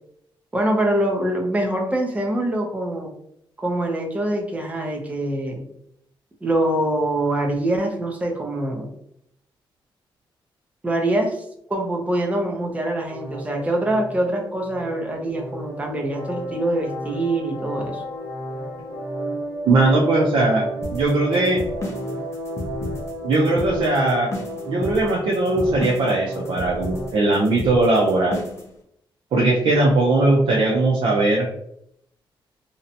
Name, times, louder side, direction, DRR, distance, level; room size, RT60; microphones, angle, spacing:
voice 1, 0.5-3.1 3.6-5.7 6.4-8.9 10.8-18.0, right 1 dB, 15° right, 1 dB, 0.5 m, -24 dB
sound 1, 13.1-27.1, right 1 dB, 40° right, 1.1 m, -32 dB
voice 2, 19.6-20.6 20.9-21.6 23.2-24.3 24.7-28.4 29.3-31.5, right 2 dB, 70° right, -2 dB, 0.5 m, -19 dB
sound 2, 20.8-28.7, left 1 dB, 35° left, 0.6 m, -33 dB
2.7 x 2.1 x 2.6 m, 0.73 s
wide cardioid pair, 140°, 9 cm